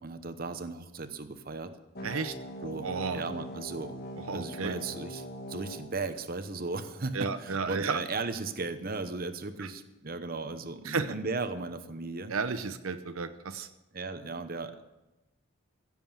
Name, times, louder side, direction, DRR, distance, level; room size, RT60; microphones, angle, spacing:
voice 1, 0.0-1.7 2.6-3.9 4.3-12.3 13.9-14.8, right 3 dB, 45° right, 9 dB, 0.9 m, -36 dB
sound 1, 1.9-6.9, equal, 45° left, 1.5 m, -42 dB
voice 2, 2.0-2.4 2.8-3.2 4.3-4.8 7.1-8.0 9.6-9.7 10.8-11.1 12.3-13.7, right 5 dB, 75° right, 10 dB, 0.7 m, -32 dB
16.0 x 7.7 x 7.3 m, 1.0 s
head